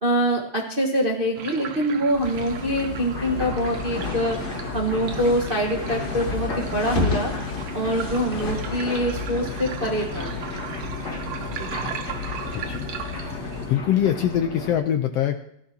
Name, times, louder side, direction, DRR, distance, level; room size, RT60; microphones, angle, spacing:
voice 1, 0.0-4.4 4.7-7.3 7.7-10.3, equal, 40° right, -1 dB, 0.8 m, -24 dB
sound 1, 1.4-14.4, right 8 dB, 65° right, 1.9 m, -38 dB
sound 2, 2.1-13.8, left 4 dB, 90° left, 0.4 m, -32 dB
sound 3, 3.1-14.8, left 3 dB, 35° left, 2.4 m, -35 dB
voice 2, 12.5-12.9 13.2-13.4 13.7-15.4, left 10 dB, 75° left, 6 dB, 1.5 m, -23 dB
16.5 x 14.0 x 2.8 m, 0.74 s
omnidirectional pair, 3.4 m